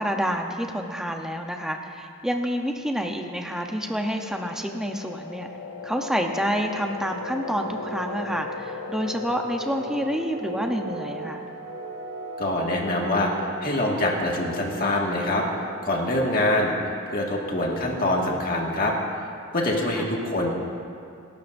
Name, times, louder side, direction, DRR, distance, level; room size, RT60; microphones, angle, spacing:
voice 1, 0.0-5.5 5.8-11.4 19.9-20.0, equal, 5° right, 3 dB, 0.8 m, -28 dB
sound 1, 3.1-17.7, left 1 dB, 80° left, 1.7 m, -38 dB
voice 2, 12.4-15.5 15.8-18.9 19.5-20.5, left 1 dB, 40° left, -1 dB, 1.8 m, -25 dB
27.0 x 12.5 x 2.6 m, 2.4 s
head